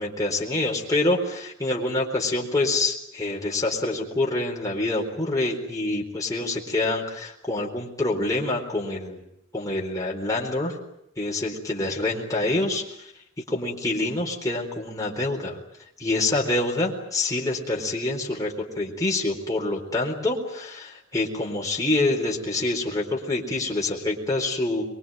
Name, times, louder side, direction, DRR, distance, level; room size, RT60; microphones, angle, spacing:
voice 1, 0.0-9.2 9.5-10.8 11.2-13.0 13.5-15.6 16.0-24.8, left 2 dB, 15° left, -2 dB, 4.1 m, -26 dB
23.5 x 23.0 x 9.1 m, 0.76 s
head